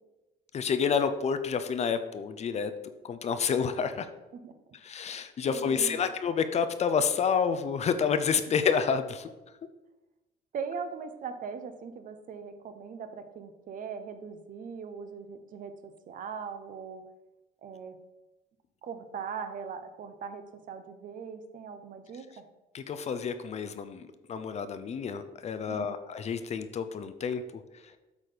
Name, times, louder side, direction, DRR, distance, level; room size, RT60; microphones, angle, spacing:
voice 1, 0.5-2.7 3.0-4.1 4.8-9.3 22.7-27.4, left 6 dB, 40° left, 10 dB, 0.6 m, -29 dB
voice 2, 5.4-6.1 10.5-17.0 17.6-18.0 18.8-22.2 25.7-26.0, right 6 dB, 50° right, 8 dB, 0.9 m, -40 dB
8.1 x 4.2 x 5.0 m, 1.0 s
cardioid pair, 110°, 17 cm